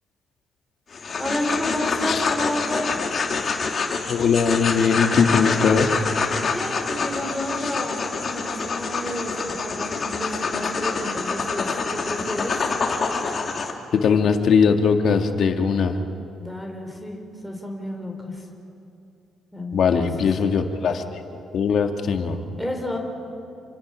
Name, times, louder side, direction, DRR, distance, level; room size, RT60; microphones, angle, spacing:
sound 1, 0.9-13.7, left 4 dB, 45° left, 2.7 m, -26 dB
voice 1, 1.2-3.0 6.5-12.6 16.4-17.2 17.4-18.4 19.5-20.1 22.6-23.0, left 1 dB, ahead, 2 dB, 4.1 m, -31 dB
voice 2, 4.1-5.9 13.9-16.0 19.7-21.2 21.5-22.4, left 6 dB, 65° left, 5 dB, 1.9 m, -20 dB
28.0 x 24.0 x 6.3 m, 2.6 s
cardioid pair, 90°, 0 cm